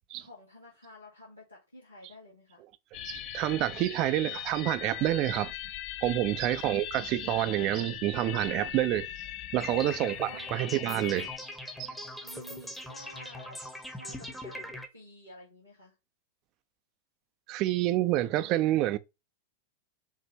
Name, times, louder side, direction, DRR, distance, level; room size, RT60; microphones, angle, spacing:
voice 1, 0.2-2.6 6.4-7.3 9.9-10.8 12.2-15.9, left 1 dB, 85° left, 1.4 m, -52 dB
sound 1, 2.9-11.4, left 13 dB, 40° left, 0.4 m, -40 dB
voice 2, 3.0-5.5 6.0-9.1 9.5-11.3 11.8-11.9 17.5-19.0, right 14 dB, 40° right, 0.4 m, -28 dB
sound 2, 9.6-14.9, left 1 dB, 5° left, 0.9 m, -42 dB
5.5 x 2.6 x 2.9 m
figure-of-eight pair, 95°, 0 cm